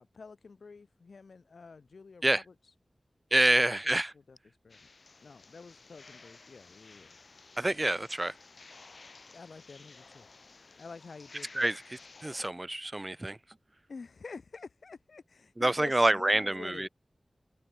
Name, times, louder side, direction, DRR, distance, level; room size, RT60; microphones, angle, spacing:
voice 1, 0.0-2.5 3.5-4.4 4.6-4.8 5.2-7.2 9.3-10.3 10.8-11.8 13.9-16.9, left 4 dB, 85° left, 3.2 m, -48 dB
voice 2, 3.3-4.1 7.6-8.3 11.5-11.8 12.2-13.4 15.6-16.9, right 1 dB, 25° right, 0.6 m, -27 dB
sound 1, 4.7-12.5, left 4 dB, 65° left, 7.6 m, -54 dB
wide cardioid pair, 75°, 0 cm